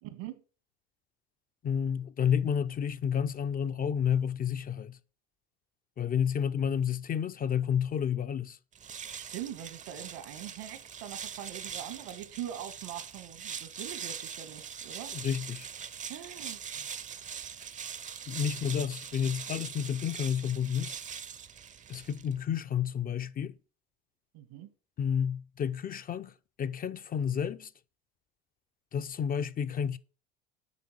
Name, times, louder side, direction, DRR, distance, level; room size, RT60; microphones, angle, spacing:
voice 1, 0.0-0.4 9.1-15.2 16.1-16.9 24.3-24.7, right 11 dB, 70° right, 1.6 m, -43 dB
voice 2, 1.6-5.0 6.0-8.6 15.1-15.7 18.3-21.0 21.9-23.6 25.0-27.7 28.9-30.0, left 8 dB, 30° left, 0.6 m, -30 dB
sound 1, 8.7-22.4, right 7 dB, 25° right, 0.6 m, -42 dB
8.2 x 5.2 x 6.5 m
supercardioid pair, 100°, 29 cm